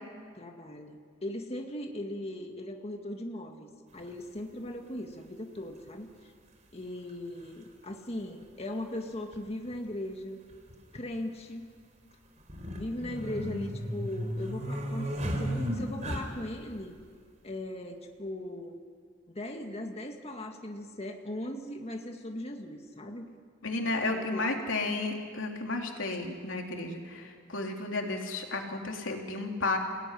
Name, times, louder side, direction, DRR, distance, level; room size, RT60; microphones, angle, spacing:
voice 1, 0.4-6.3 6.7-10.4 10.9-11.7 12.7-15.1 15.4-17.0 17.4-18.8 19.3-23.3 23.8-24.5, left 1 dB, 35° left, 3 dB, 1.9 m, -39 dB
sound 1, 4.0-4.1 5.6-5.7 7.1-7.2 7.4-7.5 9.3-9.5 9.7-9.8 10.5-11.0 12.4-16.6, equal, 40° right, 4.3 m, -34 dB
voice 2, 23.6-29.8, left 2 dB, 90° left, 2 dB, 3.2 m, -32 dB
29.0 x 17.5 x 9.9 m, 2.1 s
head